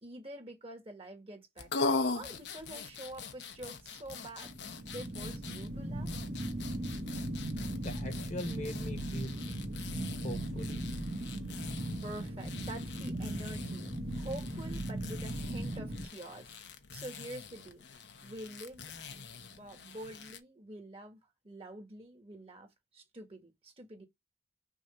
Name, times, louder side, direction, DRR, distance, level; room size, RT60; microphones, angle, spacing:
voice 1, 0.0-4.5 4.9-6.1 11.6-11.7 12.0-17.9 18.2-21.2 21.4-24.0, right 1 dB, 35° right, 1.7 m, -47 dB
sound 1, 1.6-20.4, left 4 dB, 85° left, 0.9 m, -42 dB
sound 2, 4.4-16.1, right 1 dB, 65° right, 1.6 m, -38 dB
voice 2, 7.8-9.4 10.2-10.8, left 1 dB, 40° left, 1.2 m, -41 dB
6.3 x 2.7 x 5.5 m
head